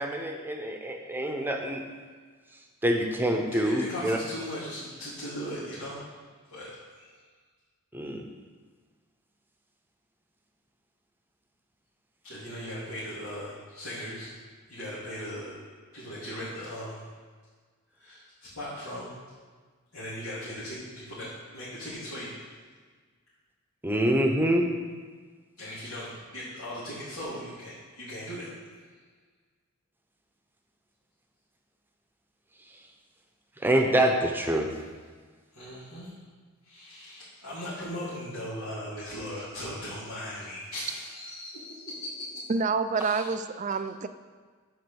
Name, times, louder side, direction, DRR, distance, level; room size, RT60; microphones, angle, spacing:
voice 1, 0.0-1.8 2.8-4.2 7.9-8.2 23.8-24.7 33.6-34.7, right 1 dB, 10° right, 3 dB, 0.8 m, -25 dB
voice 2, 3.5-6.1 6.5-7.1 12.2-14.3 14.7-15.6 15.9-17.0 18.0-19.1 19.9-22.5 25.6-28.5 35.5-36.1 36.6-42.4 42.9-43.3, equal, 90° left, -12 dB, 2.9 m, -38 dB
voice 3, 42.5-44.1, right 4 dB, 35° right, 11 dB, 0.4 m, -28 dB
7.8 x 5.2 x 6.9 m, 1.5 s
head